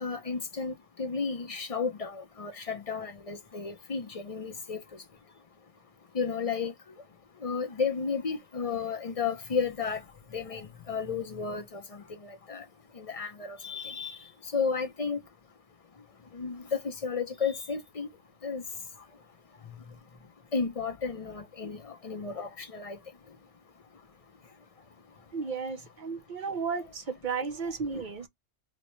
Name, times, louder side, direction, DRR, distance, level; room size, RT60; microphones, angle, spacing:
voice 1, 0.0-4.8 6.1-6.7 7.4-10.0 10.3-12.6 13.0-14.2 14.5-15.2 16.3-18.1 18.4-18.6 20.5-23.0, left 5 dB, 40° left, 0.5 m, -33 dB
voice 2, 25.3-28.3, right 5 dB, 55° right, 0.6 m, -34 dB
4.1 x 2.1 x 3.0 m
omnidirectional pair, 1.2 m